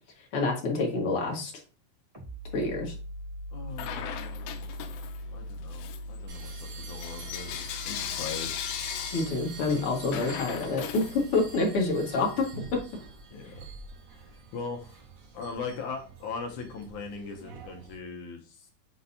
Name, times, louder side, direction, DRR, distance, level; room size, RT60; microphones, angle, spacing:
voice 1, 0.3-1.5 2.5-2.9 9.1-12.5 12.7-12.8, left 3 dB, 45° left, -1 dB, 2.1 m, -27 dB
sound 1, 2.1-13.5, equal, 20° right, 1.0 m, -42 dB
voice 2, 3.5-4.7 5.3-8.5 13.3-13.7 14.1-14.2 14.5-15.0 15.3-18.7, left 4 dB, 70° left, 2 dB, 2.1 m, -40 dB
Bell / Coin (dropping), 3.7-5.3 5.7-11.7, left 10 dB, 85° left, 2.4 m, -38 dB
sound 2, 6.3-18.0, right 5 dB, 85° right, 3.6 m, -47 dB
8.8 x 4.0 x 2.7 m, 0.34 s
omnidirectional pair, 4.2 m